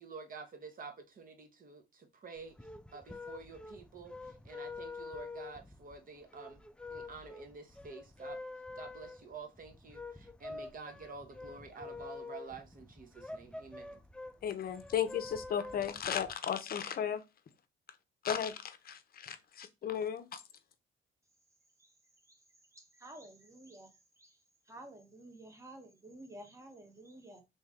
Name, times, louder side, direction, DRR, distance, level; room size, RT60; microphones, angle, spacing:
voice 1, 0.0-2.6 2.9-6.6 6.9-8.4 8.8-14.0, right 4 dB, 45° right, 0.9 m, -49 dB
sound 1, 2.4-16.3, left 3 dB, 5° left, 0.3 m, -47 dB
voice 2, 14.4-17.2 18.2-20.4, left 8 dB, 50° left, 0.6 m, -35 dB
voice 3, 22.7-23.9 24.2-24.3 24.7-27.4, right 1 dB, 15° right, 1.0 m, -52 dB
3.0 x 2.7 x 3.5 m
cardioid pair, 90°, 20 cm